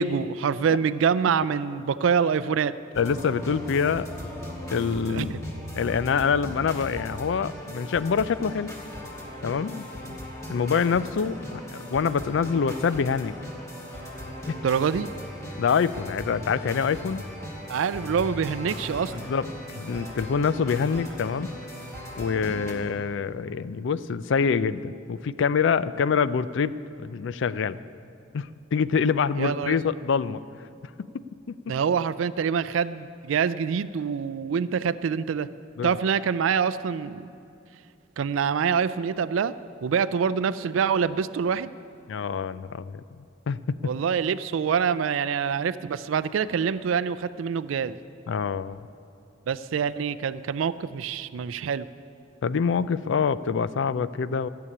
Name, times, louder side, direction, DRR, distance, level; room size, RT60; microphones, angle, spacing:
voice 1, 0.0-2.8 5.1-5.5 14.6-15.1 17.7-19.1 29.4-29.8 31.7-35.5 35.8-37.3 38.2-39.5 39.8-41.7 43.8-48.0 49.5-51.9, right 6 dB, 85° right, 14 dB, 0.4 m, -25 dB
sound 1, 2.9-22.7, left 1 dB, 15° left, 2.2 m, -38 dB
voice 2, 3.0-4.1 4.7-5.3 5.7-8.8 9.4-10.2 10.5-13.3 14.5-14.6 15.6-17.3 19.1-21.5 22.2-27.8 28.3-30.4 31.1-31.7 35.8-35.9 42.1-43.0 43.5-43.8 48.3-48.8 52.4-54.5, left 6 dB, 65° left, 16 dB, 0.4 m, -26 dB
14.0 x 7.0 x 9.7 m, 2.6 s
head